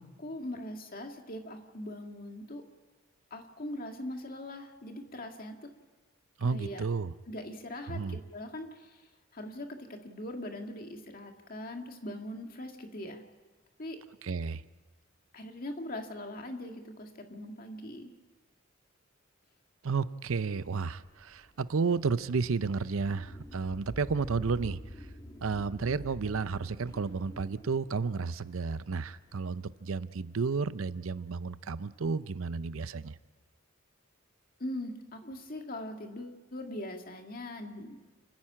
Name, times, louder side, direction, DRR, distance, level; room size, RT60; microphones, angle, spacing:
voice 1, 0.2-2.6 3.3-5.7 6.4-6.8 7.3-9.0 9.3-13.2 13.8-14.0 15.3-18.1 34.6-38.0, left 1 dB, 45° left, 4 dB, 2.0 m, -41 dB
voice 2, 6.4-7.1 7.9-8.2 14.2-14.6 19.8-24.8 25.4-33.1, right 4 dB, 75° right, 15 dB, 0.6 m, -32 dB
sound 1, 20.6-29.6, equal, 15° left, 2.2 m, -47 dB
29.0 x 10.5 x 8.7 m, 1.3 s
head